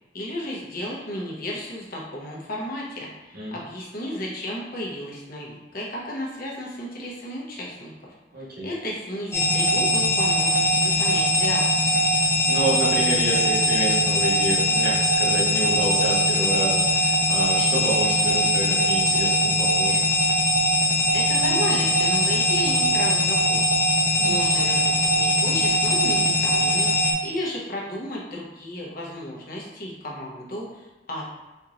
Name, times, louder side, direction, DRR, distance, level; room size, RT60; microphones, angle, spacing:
voice 1, 0.1-7.9 8.6-12.0 21.1-23.6 24.2-31.3, left 1 dB, 50° left, -3 dB, 0.9 m, -33 dB
voice 2, 8.3-8.7 12.5-20.0 24.1-24.4, right 1 dB, 55° right, -7 dB, 1.3 m, -29 dB
sound 1, 9.3-27.1, equal, 15° left, 0.7 m, -21 dB
4.4 x 2.9 x 2.6 m, 1.1 s
head